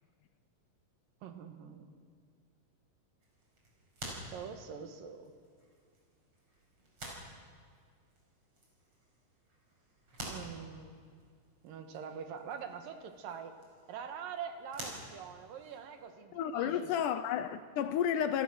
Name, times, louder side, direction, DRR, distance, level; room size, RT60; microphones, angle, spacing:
voice 1, 1.2-1.9 4.3-5.3 10.3-11.0 11.6-13.6 13.9-17.0, right 7 dB, 75° right, 6 dB, 3.2 m, -44 dB
sound 1, 3.2-16.1, right 1 dB, 40° right, 6.3 m, -50 dB
voice 2, 16.3-18.4, left 9 dB, 75° left, 11 dB, 2.0 m, -32 dB
28.5 x 17.5 x 6.3 m, 2.1 s
omnidirectional pair, 4.0 m